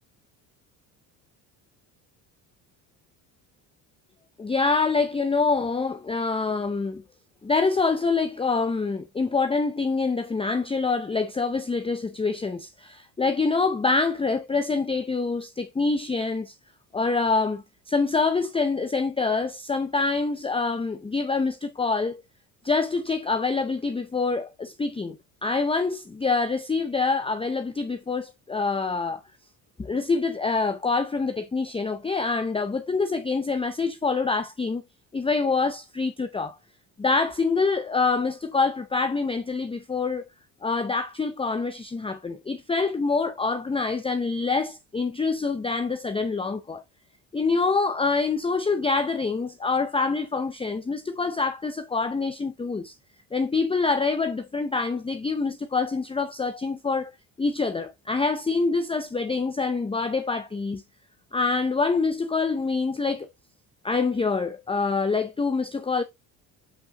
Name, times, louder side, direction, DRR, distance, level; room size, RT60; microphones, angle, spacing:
voice 1, 4.4-7.0 7.4-16.5 16.9-22.2 22.6-25.2 25.4-29.2 29.8-34.8 35.1-36.6 37.0-40.2 40.6-46.8 47.3-52.9 53.3-57.1 57.4-60.8 61.3-63.3 63.8-66.0, left 4 dB, 10° left, 0.6 m, -26 dB
8.2 x 4.7 x 2.9 m
supercardioid pair, 70°, 46 cm